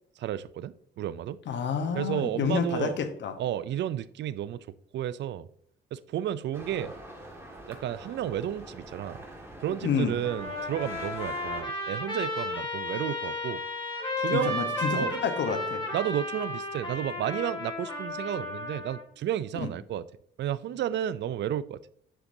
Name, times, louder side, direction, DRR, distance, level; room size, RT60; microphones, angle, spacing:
voice 1, 0.2-1.4 1.9-3.0 3.4-4.6 4.9-5.5 5.9-6.9 7.7-9.2 9.6-13.6 14.2-15.1 15.9-20.0 20.4-21.9, right 11 dB, 65° right, 17 dB, 0.4 m, -32 dB
voice 2, 1.5-3.3 9.8-10.1 14.3-15.8 19.6-19.7, left 6 dB, 65° left, 9 dB, 1.0 m, -29 dB
sound 1, 6.5-11.6, right 1 dB, 10° right, 1.8 m, -45 dB
Trumpet, 10.2-19.0, left 2 dB, 25° left, 2.9 m, -33 dB
8.6 x 6.5 x 2.7 m, 0.68 s
cardioid pair, 90°, 20 cm